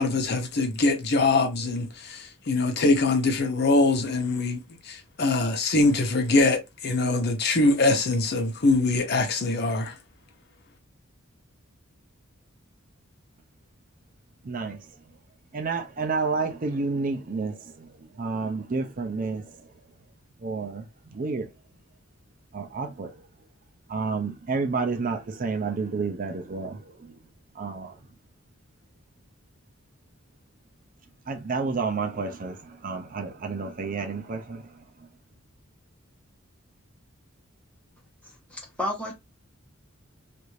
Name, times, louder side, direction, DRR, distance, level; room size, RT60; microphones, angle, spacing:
voice 1, 0.0-9.9, left 2 dB, 50° left, 0.7 m, -23 dB
voice 2, 14.4-14.9 15.5-19.6 20.4-21.5 22.5-23.2 23.9-27.2 27.6-27.9 31.3-34.8, right 4 dB, 40° right, 0.5 m, -30 dB
voice 3, 38.5-39.1, left 1 dB, 5° left, 1.2 m, -30 dB
3.2 x 2.5 x 3.1 m
head